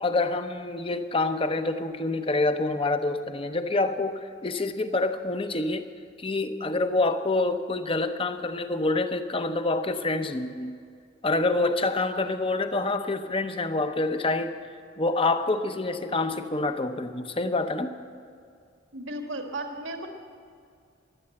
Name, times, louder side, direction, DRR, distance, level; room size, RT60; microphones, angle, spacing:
voice 1, 0.0-5.8 6.2-10.7 11.2-14.5 15.0-17.9, left 2 dB, 25° left, 9 dB, 0.7 m, -27 dB
voice 2, 18.9-20.1, right 1 dB, 80° right, 4 dB, 1.6 m, -34 dB
15.5 x 11.0 x 7.7 m, 2.3 s
head